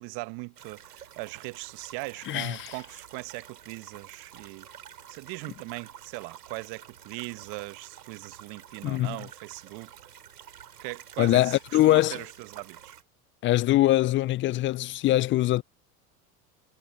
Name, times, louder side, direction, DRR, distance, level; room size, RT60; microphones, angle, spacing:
voice 1, 0.0-4.7 5.1-9.9 10.8-13.0, right 27 dB, 60° right, 1.2 m, -40 dB
sound 1, 0.5-13.0, right 9 dB, 90° right, 6.7 m, -49 dB
voice 2, 2.3-2.7 8.8-9.2 11.2-12.2 13.4-15.6, left 15 dB, 30° left, 0.3 m, -23 dB
hypercardioid pair, 75°, 47 cm